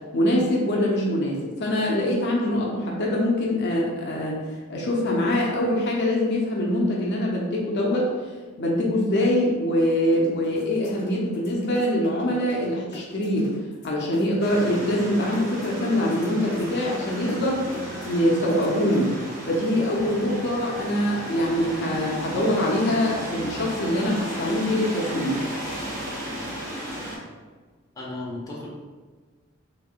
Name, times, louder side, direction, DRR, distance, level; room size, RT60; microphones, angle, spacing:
voice 1, 0.1-4.4 4.7-8.1 8.6-13.5 13.8-17.7 18.1-19.1 19.4-25.4, left 1 dB, 55° left, -2 dB, 0.6 m, -24 dB
sound 1, 10.1-12.7 12.9-19.6, left 1 dB, 40° left, 1.0 m, -41 dB
sound 2, 14.4-27.2, equal, 80° right, 1.2 m, -34 dB
voice 2, 28.0-28.7, left 2 dB, 20° left, -4 dB, 0.7 m, -34 dB
3.5 x 3.1 x 2.4 m, 1.4 s
head